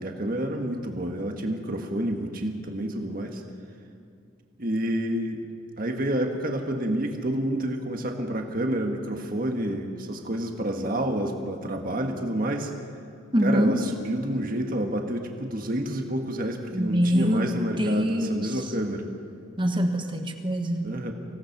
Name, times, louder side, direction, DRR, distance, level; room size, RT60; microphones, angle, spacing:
voice 1, 0.0-3.4 4.6-5.4 5.8-12.7 13.4-19.1 20.8-21.1, right 1 dB, 40° right, 3 dB, 1.7 m, -29 dB
voice 2, 13.3-13.8 16.7-17.5 17.8-18.6 19.6-20.9, equal, 25° right, 5 dB, 1.5 m, -24 dB
25.5 x 17.5 x 6.0 m, 2.4 s
head